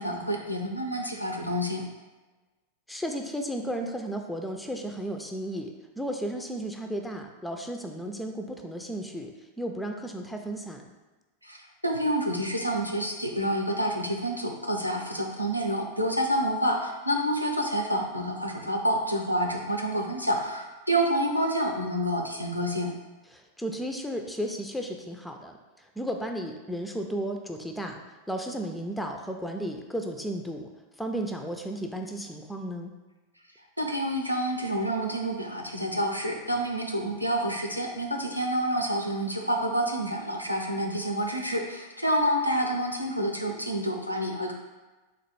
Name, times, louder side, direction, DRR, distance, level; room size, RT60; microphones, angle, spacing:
voice 1, 0.0-1.8 11.4-22.9 33.8-44.5, equal, 90° left, 2 dB, 0.5 m, -28 dB
voice 2, 2.9-9.3 9.6-10.8 23.3-28.0 28.3-30.7 31.0-32.9, right 1 dB, 5° left, 3 dB, 0.4 m, -34 dB
4.0 x 2.4 x 4.6 m, 1.2 s
figure-of-eight pair, 90°, 0 cm